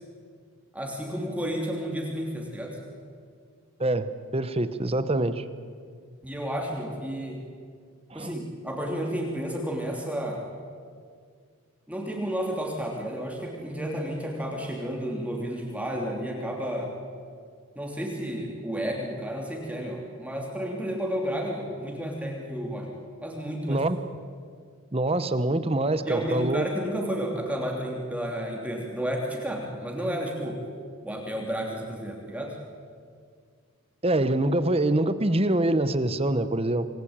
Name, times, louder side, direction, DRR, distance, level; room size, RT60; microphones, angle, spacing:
voice 1, 0.7-2.8 6.2-7.4 8.1-10.4 11.9-16.9 17.7-22.9 23.2-23.8 26.0-30.6 31.0-32.6, equal, 5° right, -1 dB, 3.0 m, -31 dB
voice 2, 3.8-5.4 8.1-8.3 23.7-24.0 24.9-26.7 34.0-36.9, right 1 dB, 25° right, 12 dB, 1.0 m, -25 dB
27.0 x 20.0 x 8.9 m, 2.1 s
head